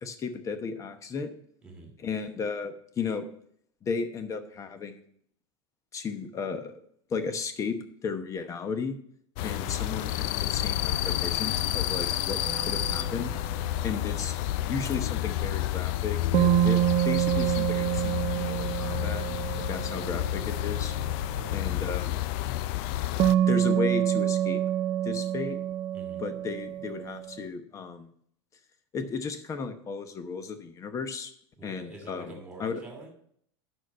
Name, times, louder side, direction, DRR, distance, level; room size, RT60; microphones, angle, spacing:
voice 1, 0.0-1.3 2.0-3.3 3.8-5.0 5.9-6.8 7.1-7.8 8.0-9.0 9.4-13.3 13.8-14.3 14.6-16.8 17.0-19.3 19.5-20.9 21.5-22.2 23.5-24.6 25.0-25.6 26.2-28.1 28.9-31.3 31.6-32.8, left 5 dB, 20° left, 10 dB, 0.9 m, -34 dB
voice 2, 1.6-2.0 21.4-22.0 25.9-26.2 31.6-33.1, right 2 dB, 5° right, 2 dB, 2.5 m, -46 dB
sound 1, 9.4-23.3, left 13 dB, 50° left, 0.4 m, -30 dB
sound 2, 12.4-13.9 16.3-20.8 23.2-27.4, right 12 dB, 30° right, 0.4 m, -27 dB
9.1 x 6.4 x 5.5 m, 0.65 s
supercardioid pair, 150°, 15 cm